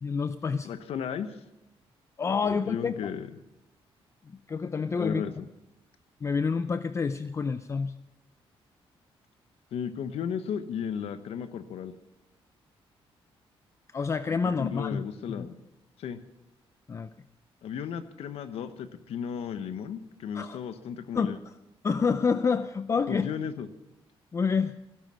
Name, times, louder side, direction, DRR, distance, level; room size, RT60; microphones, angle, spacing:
voice 1, 0.0-0.7 2.2-2.9 4.3-5.2 6.2-7.9 13.9-15.5 16.9-17.1 20.3-20.6 21.1-21.5 21.8-23.3 24.3-24.7, left 5 dB, 30° left, 12 dB, 0.4 m, -28 dB
voice 2, 0.6-1.3 2.4-3.3 4.9-5.5 9.7-11.9 14.6-15.6 16.0-16.2 17.6-21.4 23.1-23.7, left 8 dB, 90° left, 11 dB, 1.1 m, -34 dB
17.0 x 11.5 x 6.3 m, 0.94 s
cardioid pair, 140°, 10 cm